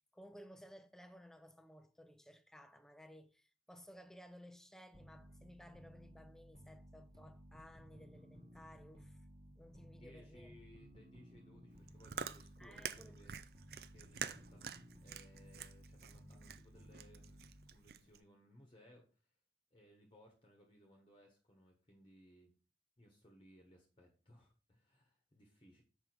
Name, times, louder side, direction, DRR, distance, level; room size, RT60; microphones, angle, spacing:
voice 1, 0.1-9.2 9.6-10.5 12.6-13.2, equal, 5° left, 0.5 m, -58 dB
sound 1, 4.9-17.9, equal, 35° right, 1.6 m, -58 dB
voice 2, 9.8-13.3 13.9-19.2 19.7-22.5 23.0-25.8, left 1 dB, 30° left, 1.3 m, -64 dB
Chewing mastication, 11.7-18.2, right 7 dB, 60° right, 0.4 m, -47 dB
7.0 x 5.1 x 4.5 m
head